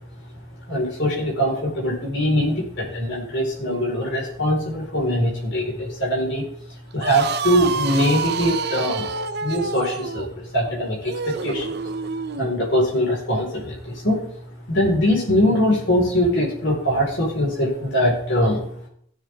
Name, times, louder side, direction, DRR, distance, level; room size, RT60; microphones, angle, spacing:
voice 1, 0.7-6.4 6.9-9.1 9.4-11.7 12.4-14.3 14.7-18.6, equal, 65° left, -3 dB, 4.5 m, -22 dB
sound 1, 6.9-12.5, right 5 dB, 55° right, 0.7 m, -28 dB
16.0 x 7.5 x 3.6 m, 0.63 s
head